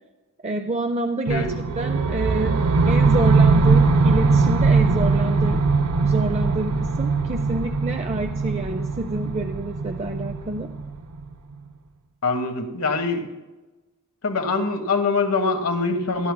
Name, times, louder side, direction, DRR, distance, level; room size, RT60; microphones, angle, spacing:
voice 1, 0.4-2.6 2.9-5.7 6.0-10.7, right 2 dB, 30° right, 6 dB, 0.5 m, -28 dB
sound 1, 1.3-11.3, right 4 dB, 75° right, 0.6 m, -20 dB
voice 2, 12.2-13.3 14.2-16.3, left 3 dB, 75° left, 6 dB, 1.3 m, -23 dB
17.0 x 10.5 x 2.2 m, 1.1 s
head